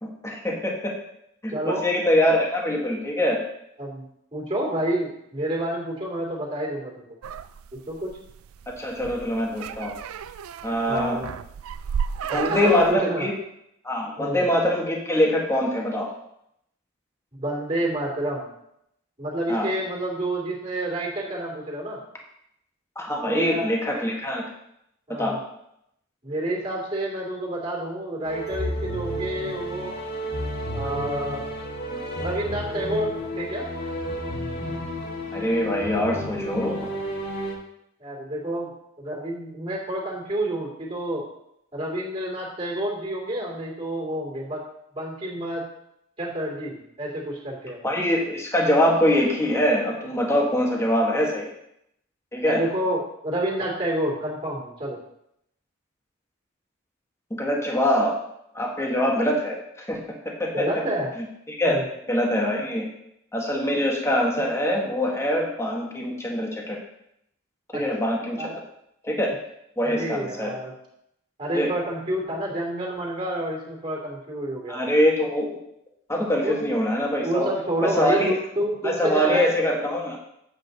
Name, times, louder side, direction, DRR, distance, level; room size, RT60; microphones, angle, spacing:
voice 1, 0.0-0.9 1.4-3.4 8.8-9.9 10.6-11.2 12.3-13.3 13.8-16.1 19.5-19.7 22.9-24.4 25.2-25.3 35.3-36.9 47.8-51.5 52.3-52.6 57.3-58.1 58.5-60.0 60.4-60.7 61.2-61.7 62.1-62.9 63.3-66.8 67.7-68.5 69.0-69.3 69.8-70.5 71.5-71.7 74.7-75.5 76.1-77.5 77.8-78.3 78.8-80.2, equal, 15° left, -1 dB, 1.4 m, -23 dB
voice 2, 1.5-1.8 3.8-4.0 4.3-7.1 7.7-8.2 10.9-11.3 12.3-13.2 14.2-14.4 17.4-18.5 19.2-22.0 23.2-23.7 25.1-25.4 26.2-30.0 30.7-31.4 32.2-33.7 38.0-41.3 41.7-44.6 44.9-45.6 46.2-47.8 52.4-55.0 60.5-61.1 61.6-61.9 67.7-67.8 68.4-68.6 69.8-70.7 71.4-74.9 76.4-76.6 77.2-79.5, right 1 dB, 25° right, -3 dB, 2.6 m, -29 dB
sound 1, 7.2-12.9, right 7 dB, 75° right, 0.4 m, -33 dB
sound 2, 28.2-37.5, equal, 50° left, 1.7 m, -31 dB
8.2 x 8.0 x 4.0 m, 0.77 s
head